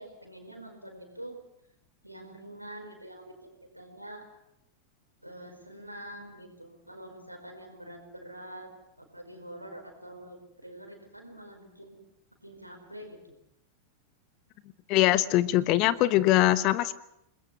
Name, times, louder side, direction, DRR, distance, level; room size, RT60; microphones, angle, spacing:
voice 1, 0.0-1.4 2.0-4.2 5.2-8.7 9.0-12.0 12.4-13.4, right 1 dB, 90° right, 4 dB, 4.8 m, -45 dB
voice 2, 14.9-16.9, left 15 dB, 40° left, 15 dB, 1.1 m, -22 dB
29.5 x 20.5 x 6.1 m, 0.81 s
figure-of-eight pair, 90°, 0 cm